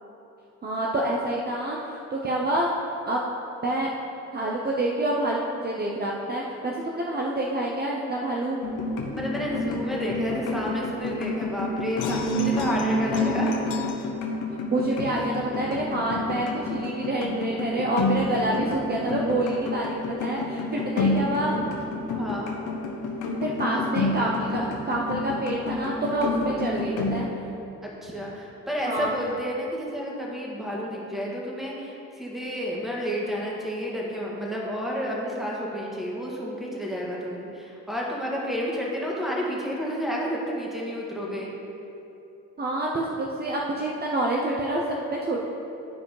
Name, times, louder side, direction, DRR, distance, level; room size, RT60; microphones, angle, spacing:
voice 1, 0.6-2.7 3.1-3.2 3.6-3.9 4.3-8.6 14.7-21.5 23.4-27.3 28.8-29.1 42.6-45.5, right 1 dB, 30° right, -3 dB, 0.9 m, -27 dB
sound 1, 8.6-27.2, left 2 dB, 85° left, 1.0 m, -29 dB
voice 2, 9.1-14.0 22.1-22.5 27.8-41.5, equal, ahead, -4 dB, 1.9 m, -30 dB
11.0 x 4.9 x 4.9 m, 2.9 s
cardioid pair, 90°, 30 cm